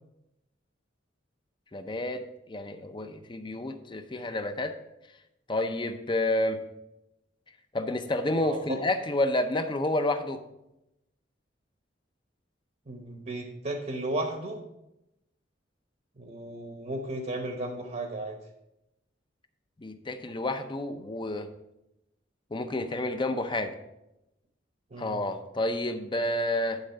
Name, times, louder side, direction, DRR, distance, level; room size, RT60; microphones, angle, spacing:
voice 1, 1.7-4.8 5.5-6.6 7.7-10.4 19.8-21.5 22.5-23.7 25.0-26.8, left 1 dB, 25° left, 8 dB, 0.6 m, -30 dB
voice 2, 8.4-8.8 12.9-14.6 16.2-18.4 24.9-25.2, right 2 dB, 45° right, 4 dB, 1.0 m, -34 dB
11.5 x 3.8 x 5.5 m, 0.89 s
head